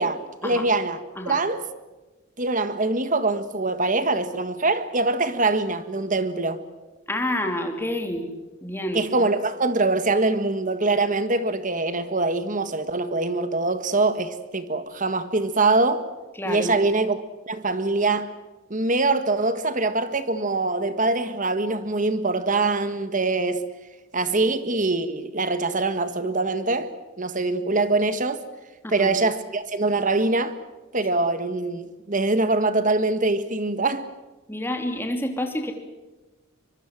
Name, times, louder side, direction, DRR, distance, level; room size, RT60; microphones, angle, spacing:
voice 1, 0.0-1.0 1.2-1.6 2.4-6.6 8.9-16.1 16.4-18.3 18.7-23.7 24.1-26.9 27.2-28.4 28.9-30.6 30.9-34.1, right 3 dB, 35° right, 1.6 m, -23 dB
voice 2, 7.1-8.3 8.6-9.0 16.4-16.8 28.8-29.2 34.5-35.7, left 1 dB, 10° left, 3.2 m, -28 dB
24.5 x 23.5 x 7.6 m
head